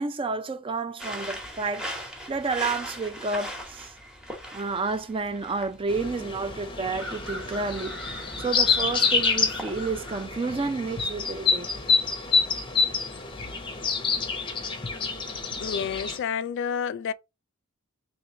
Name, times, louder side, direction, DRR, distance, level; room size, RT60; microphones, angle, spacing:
voice 1, 0.0-3.9 4.5-11.8, right 4 dB, 25° right, 0.4 m, -30 dB
sound 1, 1.0-10.2, equal, 5° right, 1.0 m, -39 dB
sound 2, 5.9-16.2, left 5 dB, 25° left, 0.7 m, -27 dB
voice 2, 15.6-17.1, left 7 dB, 55° left, 0.3 m, -29 dB
3.4 x 3.0 x 3.7 m
head